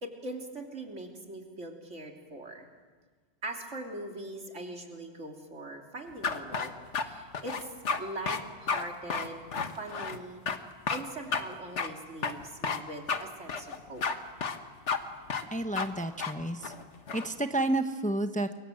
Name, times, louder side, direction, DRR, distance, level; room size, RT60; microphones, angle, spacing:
voice 1, 0.0-2.7 3.4-6.7 7.0-9.4 9.8-10.4 10.9-14.1, right 2 dB, 85° right, 2 dB, 3.4 m, -41 dB
sound 1, 6.2-7.0 7.3-8.0 8.3-8.4 8.7-8.8 9.1-10.2 10.5-10.6 10.9-11.0 11.3-11.4 11.8-11.9 12.2-12.8 13.1-13.2 13.5-14.2 14.4-14.6 14.9-15.0 15.3-15.5 15.8-15.9 16.2-16.3 16.6-17.3, left 5 dB, 75° left, 1.7 m, -31 dB
voice 2, 15.5-16.7 17.1-18.5, right 1 dB, 5° left, 7 dB, 1.0 m, -30 dB
28.5 x 23.5 x 7.8 m, 1.4 s
omnidirectional pair, 1.2 m